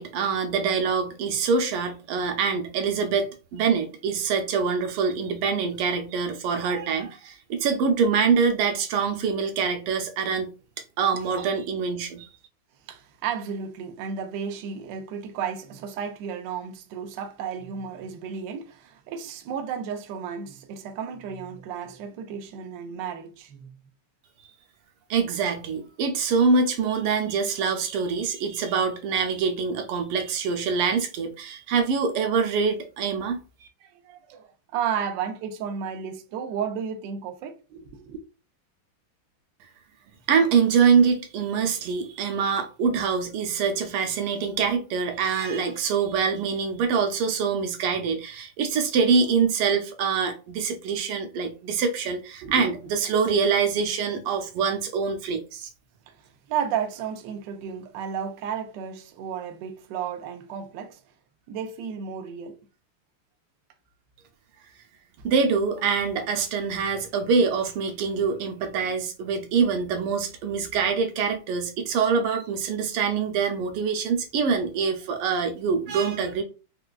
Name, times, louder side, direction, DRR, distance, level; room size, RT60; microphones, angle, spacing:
voice 1, 0.0-10.5 11.0-12.3 25.1-33.7 40.3-55.7 65.2-76.4, right 5 dB, 85° right, 1.6 m, -25 dB
voice 2, 12.9-23.8 33.8-38.2 52.4-52.7 56.1-56.2 56.5-61.0 61.5-62.6, right 7 dB, 70° right, 1.1 m, -33 dB
4.6 x 2.3 x 2.3 m
omnidirectional pair, 2.4 m